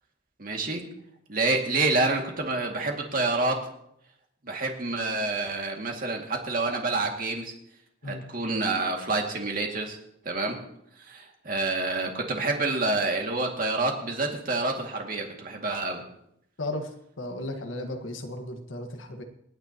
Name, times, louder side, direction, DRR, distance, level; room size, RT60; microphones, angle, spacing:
voice 1, 0.4-0.8 1.3-3.6 4.4-7.5 8.1-10.0 10.3-10.6 11.1-16.0, right 3 dB, 50° right, 2 dB, 2.2 m, -28 dB
voice 2, 16.6-19.2, left 1 dB, 90° left, 4 dB, 1.6 m, -35 dB
27.5 x 9.7 x 2.9 m, 0.74 s
head